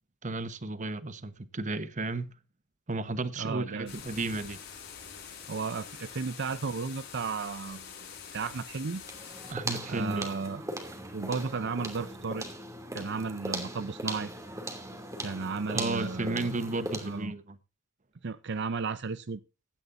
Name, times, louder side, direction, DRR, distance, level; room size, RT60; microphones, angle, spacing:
voice 1, 0.2-2.3 2.9-4.6 9.5-10.4 15.7-17.6, right 2 dB, 35° right, 1.1 m, -33 dB
voice 2, 3.4-3.9 5.5-7.9 8.3-9.0 9.9-10.6 11.1-12.5 12.9-14.3 15.2-16.5 17.0-17.3 18.2-19.4, right 4 dB, 60° right, 0.6 m, -34 dB
sound 1, 3.9-9.5, left 7 dB, 55° left, 5.8 m, -45 dB
sound 2, 9.0-17.3, right 1 dB, 15° right, 2.7 m, -39 dB
16.0 x 12.5 x 2.6 m
head